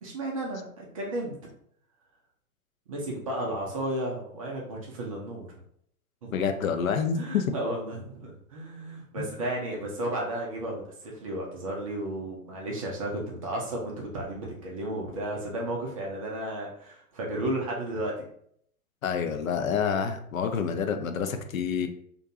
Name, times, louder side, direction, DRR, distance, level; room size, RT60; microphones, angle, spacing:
voice 1, 0.0-1.4 2.9-5.5 6.2-6.4 6.9-18.3, right 1 dB, 25° right, -2 dB, 0.4 m, -33 dB
voice 2, 6.3-7.5 9.2-9.3 19.0-21.9, left 6 dB, 70° left, 7 dB, 0.5 m, -28 dB
2.5 x 2.2 x 2.7 m, 0.67 s
figure-of-eight pair, 105°, 44 cm